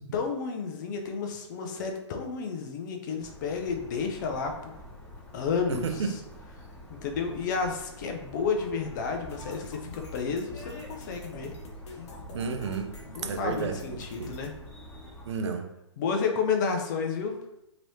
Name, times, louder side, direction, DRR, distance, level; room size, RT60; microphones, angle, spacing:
voice 1, 0.1-4.7 5.3-6.1 7.0-11.5 13.2-14.5 16.0-17.3, left 5 dB, 40° left, 4 dB, 0.5 m, -31 dB
sound 1, 3.2-15.3, left 1 dB, 15° left, 0.9 m, -47 dB
voice 2, 5.7-6.2 12.3-13.0 13.2-13.8 14.2-14.3 15.3-15.7, right 5 dB, 65° right, 6 dB, 0.5 m, -31 dB
sound 2, 9.3-14.5, left 1 dB, 65° left, 0.8 m, -46 dB
3.0 x 2.9 x 2.7 m, 0.85 s
hypercardioid pair, 135°, 15 cm